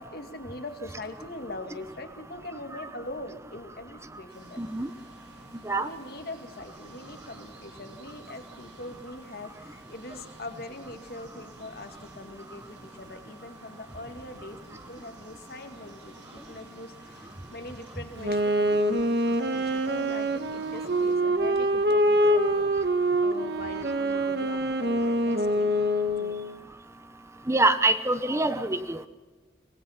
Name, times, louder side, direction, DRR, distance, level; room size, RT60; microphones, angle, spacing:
voice 1, 0.0-4.6 5.8-25.7 26.2-26.4, left 2 dB, 60° left, 6 dB, 2.1 m, -42 dB
sound 1, 4.3-21.2, right 1 dB, 85° right, 7.4 m, -53 dB
voice 2, 4.6-4.9 5.6-5.9 27.5-29.0, right 2 dB, 15° right, 11 dB, 0.8 m, -24 dB
Wind instrument woodwind instrument, 18.2-26.5, right 1 dB, 65° right, 1.6 m, -25 dB
24.5 x 19.0 x 5.8 m, 1.3 s
head